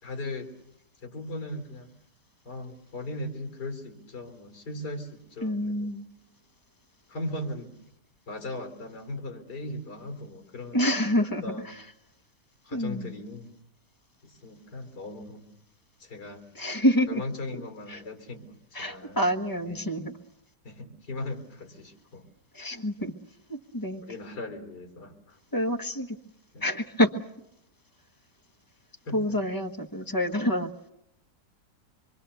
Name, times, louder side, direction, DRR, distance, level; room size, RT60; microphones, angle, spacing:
voice 1, 0.0-0.5 1.0-1.9 2.4-5.9 7.1-7.7 8.3-10.8 11.2-11.7 12.6-13.5 14.2-15.5 16.0-16.4 17.1-19.2 19.6-19.8 20.6-22.3 24.0-25.4 26.5-26.7 29.0-29.4, left 2 dB, 85° left, 5 dB, 4.1 m, -38 dB
voice 2, 5.4-6.0 10.7-11.8 12.7-13.2 16.5-17.2 17.9-18.0 18.7-20.1 22.5-23.1 23.5-24.0 25.5-26.2 26.6-27.1 29.1-30.7, equal, 15° left, 7 dB, 1.1 m, -27 dB
26.0 x 23.5 x 6.9 m, 0.80 s
omnidirectional pair, 1.7 m